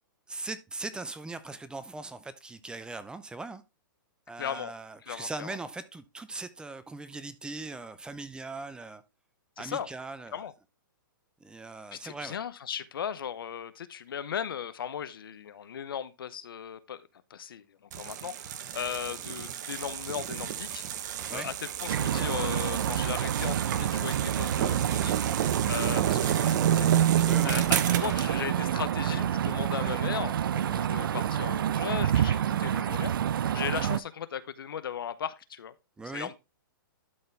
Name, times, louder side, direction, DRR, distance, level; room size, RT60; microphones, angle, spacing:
voice 1, 0.3-3.6 4.3-9.0 9.6-10.5 11.4-12.4 21.3-21.5 27.2-27.6 36.0-36.3, right 3 dB, 5° right, 0.6 m, -40 dB
voice 2, 4.4-4.7 5.0-5.6 9.6-9.9 10.3-10.5 11.9-17.0 17.3-17.6 18.0-20.8 21.3-25.1 25.7-26.9 27.4-27.6 28.0-33.1 33.5-35.7 36.1-36.4, left 8 dB, 80° left, 0.8 m, -37 dB
sound 1, 17.9-28.3, right 10 dB, 55° right, 1.0 m, -32 dB
sound 2, 21.9-34.0, right 10 dB, 75° right, 0.5 m, -27 dB
12.0 x 4.4 x 3.3 m
hypercardioid pair, 130°, 12 cm